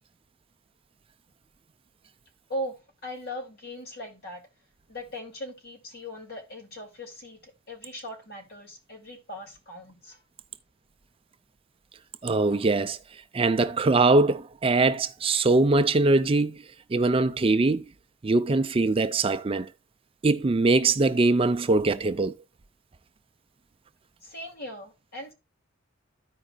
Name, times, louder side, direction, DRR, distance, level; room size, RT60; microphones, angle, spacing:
voice 1, 3.0-4.4 4.9-10.2 24.2-25.3, equal, 55° left, 2.6 m, -39 dB
voice 2, 12.2-13.0 13.3-16.6 16.9-17.8 18.2-19.7 20.2-22.3, right 3 dB, 30° right, 0.5 m, -22 dB
14.0 x 5.0 x 2.3 m
head